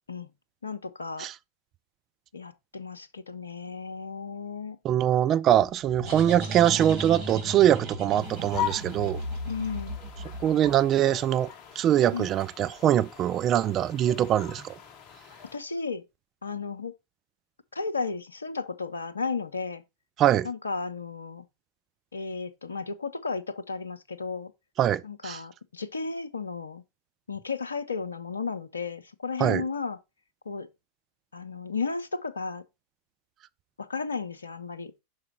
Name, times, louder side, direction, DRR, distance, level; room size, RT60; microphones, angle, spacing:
voice 1, 0.6-1.3 2.3-4.8 9.5-10.0 12.1-12.3 15.5-16.0 16.4-17.0 17.7-19.8 20.4-21.4 22.1-24.5 25.0-26.8 27.3-30.0 30.5-30.7 31.3-32.6 33.8-34.9, left 4 dB, 75° left, 0.5 m, -34 dB
voice 2, 4.8-9.2 10.4-14.8 20.2-20.5 24.8-25.4 29.4-29.6, right 11 dB, 30° right, 0.3 m, -23 dB
sound 1, 5.5-11.1, right 1 dB, 50° right, 2.3 m, -36 dB
sound 2, 8.2-15.6, left 10 dB, 40° left, 0.8 m, -40 dB
5.9 x 4.8 x 4.2 m
figure-of-eight pair, 90°, 0 cm